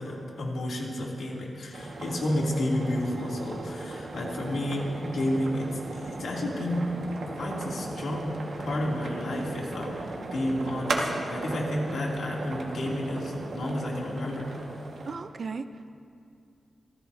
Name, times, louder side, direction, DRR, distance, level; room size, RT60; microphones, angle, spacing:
voice 1, 0.0-6.9 7.4-14.5, left 1 dB, 75° left, -3 dB, 2.9 m, -31 dB
sound 1, 1.7-15.2, right 2 dB, 85° right, 1.7 m, -37 dB
voice 2, 15.1-15.9, right 4 dB, 45° right, 10 dB, 0.5 m, -36 dB
27.0 x 15.0 x 2.8 m, 2.5 s
wide cardioid pair, 175°, 0 cm